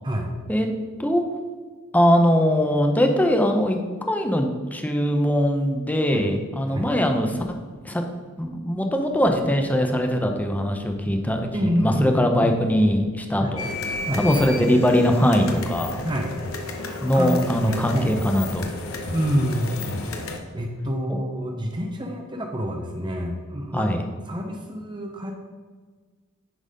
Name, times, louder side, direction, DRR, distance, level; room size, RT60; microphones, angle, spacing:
voice 1, 1.9-3.8 4.1-7.4 7.8-8.0 8.4-13.7 14.2-16.0 17.0-18.7 21.1-21.2 23.7-24.0, equal, 10° left, 4 dB, 0.7 m, -21 dB
voice 2, 11.5-12.5 13.4-13.5 14.1-14.2 16.0-16.3 17.1-18.1 19.1-19.7 20.5-23.9 24.3-25.3, equal, 20° right, 2 dB, 0.7 m, -27 dB
sound 1, 13.6-20.4, left 2 dB, 90° left, 1.0 m, -32 dB
10.0 x 4.0 x 5.2 m, 1.5 s
head